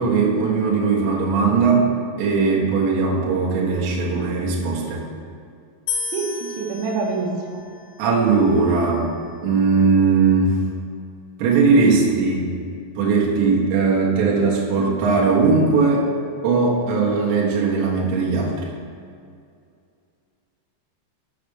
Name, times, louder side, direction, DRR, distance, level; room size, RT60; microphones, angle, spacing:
voice 1, 0.0-1.9 2.2-5.1 8.0-9.1 9.4-10.6 11.4-12.5 13.0-16.1 16.4-18.7, right 4 dB, 70° right, -4 dB, 3.5 m, -19 dB
sound 1, 5.9-9.1, left 5 dB, 80° left, 2.7 m, -33 dB
voice 2, 6.1-7.6, right 4 dB, 90° right, -1 dB, 3.8 m, -26 dB
7.8 x 6.4 x 6.6 m, 2.3 s
omnidirectional pair, 5.7 m